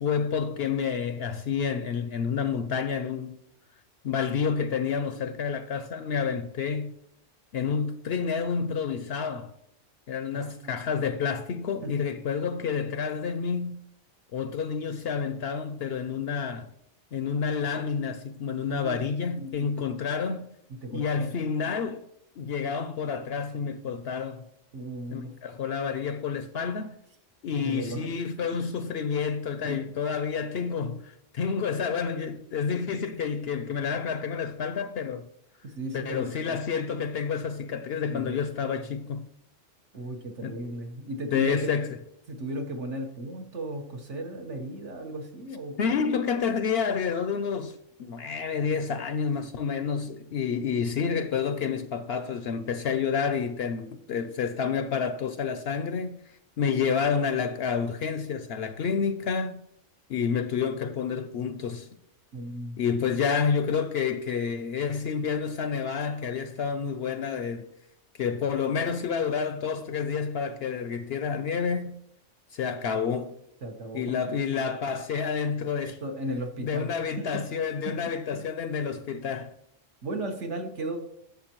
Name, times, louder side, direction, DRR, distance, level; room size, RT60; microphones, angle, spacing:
voice 1, 0.0-3.4 4.0-6.9 7.5-9.5 10.1-13.8 14.3-16.7 17.1-20.5 20.9-22.0 22.4-24.5 25.1-27.0 27.4-35.3 35.9-39.3 40.4-40.5 41.3-41.9 45.8-56.2 56.6-59.6 60.1-61.9 62.8-67.7 68.2-72.0 72.5-73.3 73.9-76.0 76.6-79.5, left 6 dB, 65° left, 0.7 m, -29 dB
voice 2, 10.3-10.7 11.8-11.9 18.7-19.8 20.8-21.3 24.7-25.3 27.6-28.1 29.6-30.0 35.6-36.5 38.1-38.3 38.7-38.8 39.9-41.7 42.3-45.8 62.3-62.8 73.6-74.4 76.0-77.5 77.8-78.0 78.3-78.4 80.0-81.0, right 1 dB, 70° right, 1.6 m, -36 dB
11.5 x 7.1 x 3.0 m
omnidirectional pair, 1.3 m